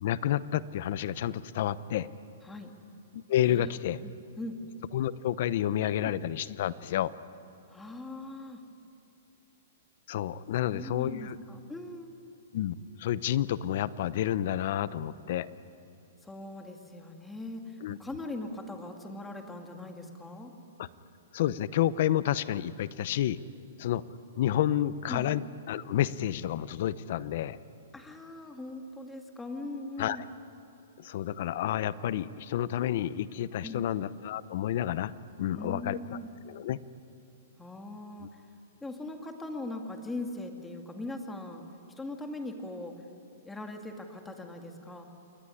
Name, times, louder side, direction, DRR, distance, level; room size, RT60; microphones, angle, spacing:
voice 1, 0.0-2.1 3.1-4.0 4.9-7.1 10.1-11.4 12.5-15.5 17.8-18.0 20.8-20.9 21.3-23.4 23.8-24.0 24.4-27.6 30.0-30.2 31.0-35.1 35.4-36.2 36.5-36.8 38.2-38.3, left 11 dB, 50° left, 17 dB, 0.8 m, -30 dB
voice 2, 3.5-3.8 4.0-4.6 7.7-8.6 10.6-12.2 16.2-20.5 25.1-25.3 27.9-30.3 33.6-33.9 35.5-36.3 37.6-38.4 38.8-41.6 42.0-42.9 43.4-45.1, left 2 dB, 5° left, 4 dB, 2.1 m, -40 dB
28.5 x 21.0 x 10.0 m, 2.8 s
hypercardioid pair, 165°, 0 cm